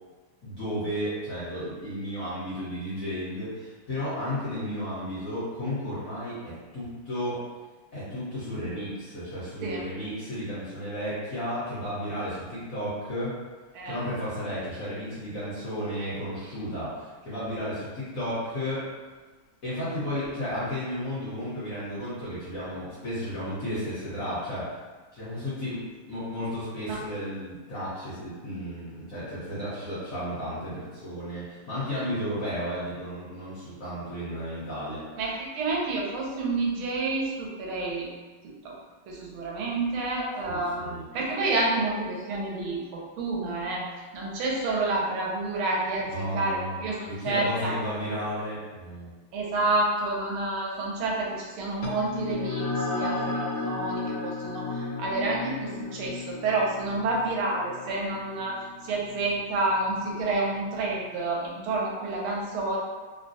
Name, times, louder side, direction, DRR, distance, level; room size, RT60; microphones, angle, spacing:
voice 1, 0.4-7.4 7.9-13.3 13.8-18.9 19.6-24.7 25.1-25.8 26.1-35.0 40.4-41.0 46.1-49.1, equal, 45° left, -11 dB, 1.3 m, -33 dB
voice 2, 35.2-38.1 38.6-38.8 39.1-43.8 44.1-47.7 49.3-58.6 58.8-62.8, right 2 dB, 80° right, -3 dB, 1.5 m, -29 dB
sound 1, 51.8-60.7, left 3 dB, 85° left, 0.9 m, -34 dB
3.5 x 2.2 x 2.6 m, 1.3 s
omnidirectional pair, 2.3 m